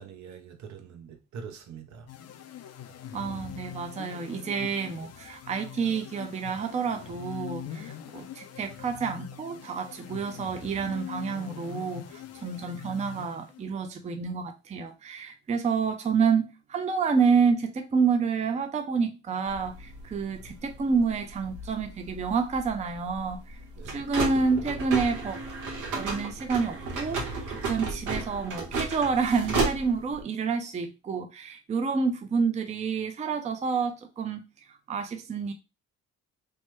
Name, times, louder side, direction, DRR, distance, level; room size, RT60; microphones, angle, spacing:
voice 1, 0.0-2.1 23.8-24.0, right 6 dB, 70° right, 0.7 m, -44 dB
sound 1, 2.1-13.8, left 10 dB, 55° left, 0.5 m, -42 dB
voice 2, 3.1-23.6 23.9-25.4 25.9-34.4 34.9-35.5, right 5 dB, 25° right, 0.4 m, -28 dB
sound 2, 19.5-30.2, right 3 dB, 90° right, 1.1 m, -33 dB
3.1 x 2.1 x 3.0 m
cardioid pair, 90°, 30 cm